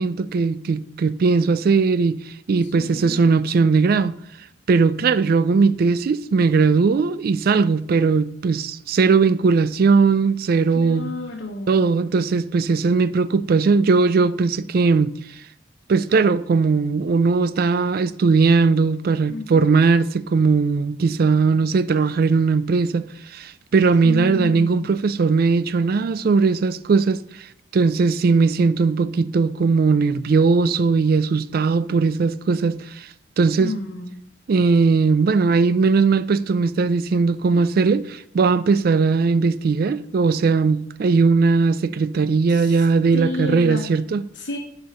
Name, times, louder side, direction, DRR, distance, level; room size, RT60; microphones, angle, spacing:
voice 1, 0.0-4.1 4.7-11.1 11.7-15.1 15.9-27.5 27.7-33.1 33.4-33.7 34.5-44.2, right 4 dB, 50° right, 0.3 m, -19 dB
voice 2, 2.6-3.3 10.7-12.0 19.3-19.8 24.0-24.9 33.6-34.1 42.5-43.9 44.3-44.6, left 2 dB, 70° left, 1.1 m, -31 dB
6.6 x 6.2 x 6.4 m
head